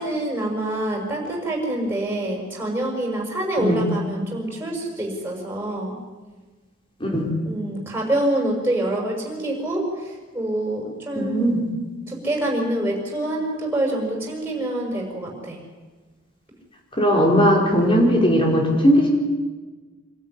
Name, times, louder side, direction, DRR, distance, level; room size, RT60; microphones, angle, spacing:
voice 1, 0.0-5.9 7.4-11.4 12.1-15.6, right 1 dB, 10° right, 0 dB, 6.4 m, -26 dB
voice 2, 7.0-7.3 11.1-11.7 17.0-19.1, equal, 25° left, 0 dB, 4.8 m, -18 dB
26.0 x 13.5 x 9.9 m, 1.3 s
head